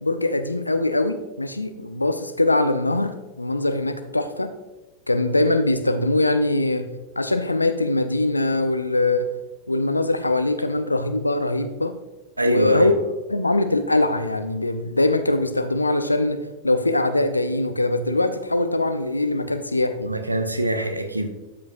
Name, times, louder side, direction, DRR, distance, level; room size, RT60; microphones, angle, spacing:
voice 1, 0.0-3.1 3.4-4.5 5.1-6.9 7.2-9.3 9.7-11.9 12.4-13.0 13.3-16.4 16.6-20.1, left 2 dB, 85° left, 0.6 m, -22 dB
voice 2, 12.4-13.0 20.0-21.3, right 1 dB, 85° right, 0.7 m, -23 dB
12.5 x 5.2 x 2.6 m
figure-of-eight pair, 90°, 0 cm